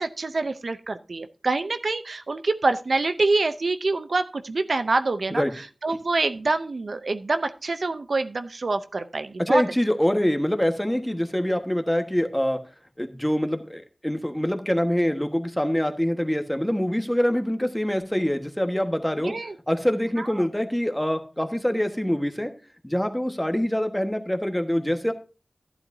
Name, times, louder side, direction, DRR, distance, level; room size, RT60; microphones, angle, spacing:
voice 1, 0.0-9.6 19.2-19.6 20.2-20.3, right 3 dB, 80° right, 10 dB, 0.6 m, -26 dB
voice 2, 9.4-12.6 13.0-19.3 19.7-22.5 22.8-25.1, equal, 10° left, 6 dB, 1.4 m, -25 dB
12.0 x 11.0 x 2.7 m, 0.33 s
cardioid pair, 40°, 0 cm